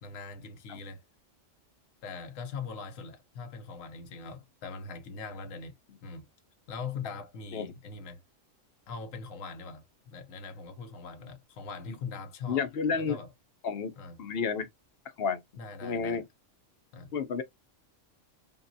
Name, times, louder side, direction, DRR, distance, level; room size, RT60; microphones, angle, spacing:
voice 1, 0.0-1.0 2.0-5.8 6.0-6.3 6.7-8.2 8.9-12.7 12.9-13.3 14.0-14.2 15.6-16.2 16.9-17.1, left 5 dB, 85° left, 1.1 m, -41 dB
voice 2, 12.5-13.2 13.6-13.9 14.2-14.7 15.2-15.4 15.8-16.2 17.1-17.4, left 5 dB, 55° left, 0.8 m, -30 dB
5.3 x 2.4 x 2.6 m
omnidirectional pair, 1.3 m